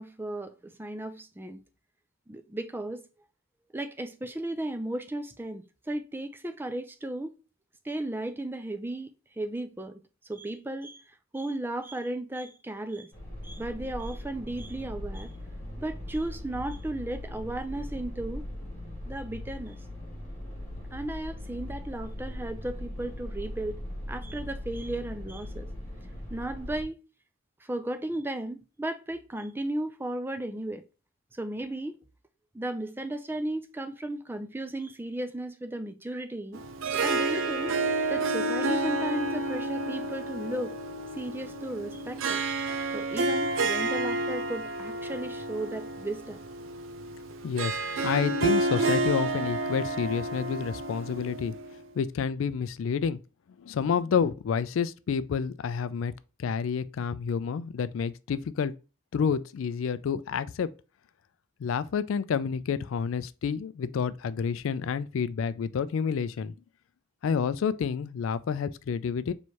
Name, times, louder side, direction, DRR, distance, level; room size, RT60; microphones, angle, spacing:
voice 1, 0.0-1.6 2.3-3.0 3.7-7.3 7.8-9.1 9.4-10.0 10.3-13.1 13.4-15.3 15.8-18.5 19.0-19.8 20.9-23.8 24.1-25.7 26.3-27.0 27.6-30.8 31.3-32.0 32.5-36.6 37.0-37.7 38.1-40.7 41.1-42.5 42.9-46.4, right 1 dB, 10° right, 0.4 m, -35 dB
sound 1, 13.1-26.8, left 1 dB, 10° left, 2.0 m, -39 dB
Harp, 36.5-51.8, right 2 dB, 75° right, 0.5 m, -30 dB
voice 2, 47.4-51.5 52.0-53.2 53.6-56.1 56.4-58.7 59.1-60.7 61.6-66.5 67.2-69.3, left 6 dB, 75° left, 0.3 m, -29 dB
4.6 x 3.1 x 2.8 m
head